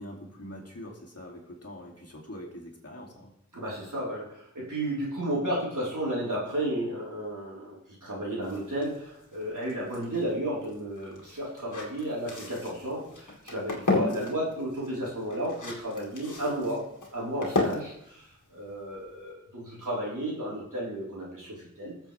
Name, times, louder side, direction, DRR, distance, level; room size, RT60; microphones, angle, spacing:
voice 1, 0.0-3.3 13.8-14.1 17.7-17.8, equal, 55° left, -2 dB, 2.7 m, -44 dB
voice 2, 3.5-16.9 17.1-17.9 18.5-21.9, right 1 dB, 90° right, -6 dB, 4.2 m, -33 dB
sound 1, 8.4-19.3, left 2 dB, 85° left, 2.0 m, -35 dB
20.0 x 7.4 x 3.5 m, 0.76 s
wide cardioid pair, 50°, 30 cm